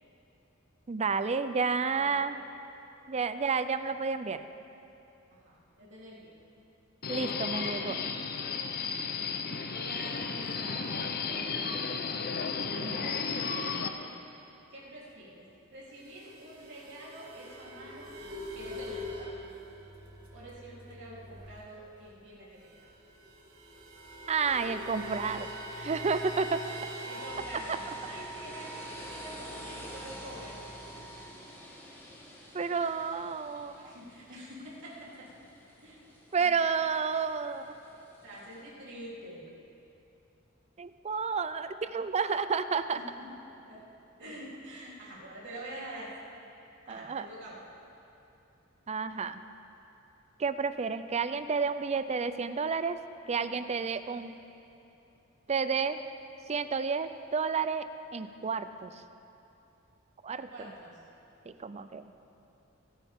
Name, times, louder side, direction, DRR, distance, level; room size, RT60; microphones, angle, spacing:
voice 1, 0.9-2.4 3.1-4.4 7.1-8.0 12.8-13.1 24.3-25.5 25.8-26.6 27.7-27.8 32.5-33.9 36.3-37.7 40.8-43.0 46.9-47.3 48.9-49.4 50.4-53.0 53.3-54.4 55.5-56.0 56.5-57.9 58.1-58.9 60.2-60.7 61.5-62.0, right 5 dB, 30° right, 11 dB, 0.4 m, -31 dB
voice 2, 1.8-2.2 5.3-6.4 7.3-7.5 8.8-8.9 9.7-12.2 13.1-13.8 14.7-15.5 15.7-18.1 18.5-19.3 20.3-22.8 27.1-30.6 33.8-35.3 35.8-36.0 36.3-36.5 38.2-39.5 42.9-43.3 43.7-43.8 44.2-46.2 46.9-47.6 60.3-61.0, right 1 dB, 60° right, -6 dB, 3.5 m, -46 dB
Subway metro underground, 7.0-13.9, left 5 dB, 45° left, 0.7 m, -34 dB
sound 1, 16.0-21.8 22.1-22.2 22.4-31.3, right 1 dB, 85° right, 1.6 m, -43 dB
sound 2, 25.0-38.6, left 1 dB, 10° left, 1.7 m, -50 dB
22.5 x 10.0 x 3.7 m, 2.8 s
head